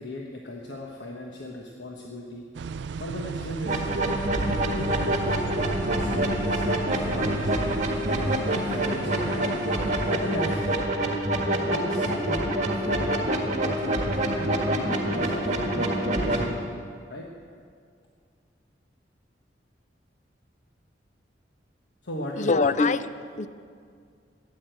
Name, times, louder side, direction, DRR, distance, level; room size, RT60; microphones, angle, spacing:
voice 1, 0.0-2.4 3.0-3.9 4.3-5.1 6.0-6.6 6.9-7.5 8.5-9.6 10.1-10.8 11.5-16.6 17.1-17.3 22.0-22.5, left 1 dB, 75° left, -1 dB, 1.2 m, -36 dB
sound 1, 2.5-10.8, right 5 dB, 75° right, 0.3 m, -36 dB
sound 2, 3.7-16.5, right 1 dB, 40° right, 1.7 m, -26 dB
voice 2, 22.3-23.5, left 4 dB, 40° left, 14 dB, 0.5 m, -24 dB
13.5 x 9.7 x 8.0 m, 2.2 s
head